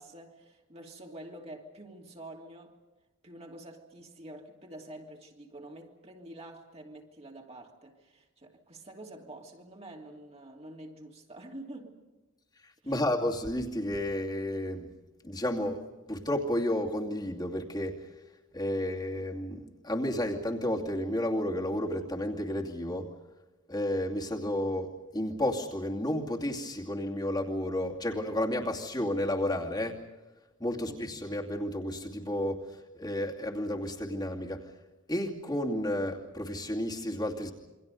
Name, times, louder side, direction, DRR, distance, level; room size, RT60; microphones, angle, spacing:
voice 1, 0.0-2.8 3.2-12.0 12.8-13.1 30.7-31.0, right 1 dB, 35° right, 3.0 m, -47 dB
voice 2, 12.9-14.9 15.2-18.1 18.5-23.1 23.7-30.0 30.6-34.7 35.1-37.5, left 1 dB, 20° left, 2.6 m, -32 dB
28.0 x 24.5 x 5.4 m
head